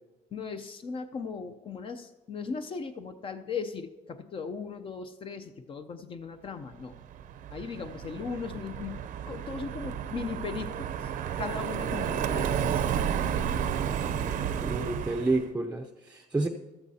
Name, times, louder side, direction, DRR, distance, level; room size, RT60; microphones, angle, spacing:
voice 1, 0.3-7.0 7.5-11.1 11.4-12.8, left 5 dB, 40° left, 8 dB, 0.6 m, -38 dB
Car passing by, 6.9-15.5, right 8 dB, 65° right, 0.7 m, -32 dB
voice 2, 14.6-16.5, right 2 dB, 10° right, 5 dB, 0.6 m, -29 dB
14.5 x 12.5 x 2.8 m, 1.1 s
cardioid pair, 125°, 15 cm